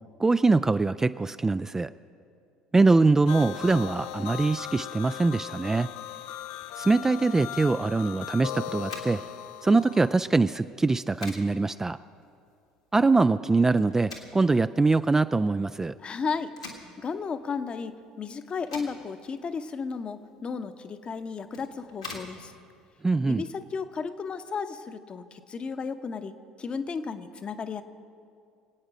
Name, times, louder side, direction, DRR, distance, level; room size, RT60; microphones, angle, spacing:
voice 1, 0.2-1.9 2.7-5.9 6.8-9.2 9.6-12.0 12.9-16.0 23.0-23.5, right 3 dB, 15° right, 11 dB, 0.3 m, -23 dB
sound 1, 3.3-10.1, left 12 dB, 65° left, 0.4 m, -38 dB
sound 2, 8.8-23.7, left 3 dB, 90° left, 1.7 m, -47 dB
voice 2, 16.0-16.5 17.0-22.5 23.3-26.3 26.6-27.8, left 5 dB, 35° left, 9 dB, 0.8 m, -34 dB
25.0 x 8.8 x 5.1 m, 2.4 s
figure-of-eight pair, 60°, 3 cm